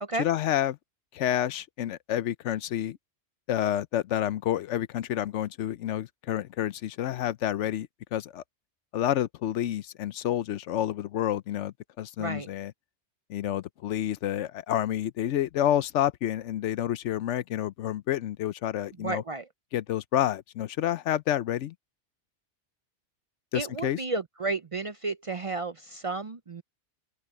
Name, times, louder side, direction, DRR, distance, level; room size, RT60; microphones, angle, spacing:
voice 1, 0.2-0.8 1.1-3.0 3.5-8.4 8.9-12.7 13.3-19.2 19.7-21.7 23.5-24.0, left 11 dB, 85° left, 1.0 m, -29 dB
voice 2, 19.0-19.5 23.5-26.6, right 3 dB, 40° right, 0.5 m, -32 dB
open air
omnidirectional pair, 1.2 m